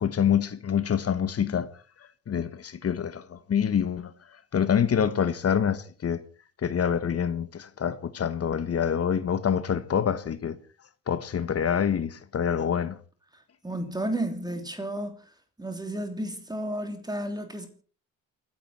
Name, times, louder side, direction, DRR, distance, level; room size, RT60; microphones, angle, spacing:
voice 1, 0.0-1.7 2.3-4.1 4.5-6.2 6.6-10.6 11.1-13.0, left 8 dB, 45° left, 1.3 m, -26 dB
voice 2, 13.3-17.7, right 1 dB, 10° right, 3.2 m, -33 dB
28.5 x 10.5 x 4.4 m
supercardioid pair, 80°, 34 cm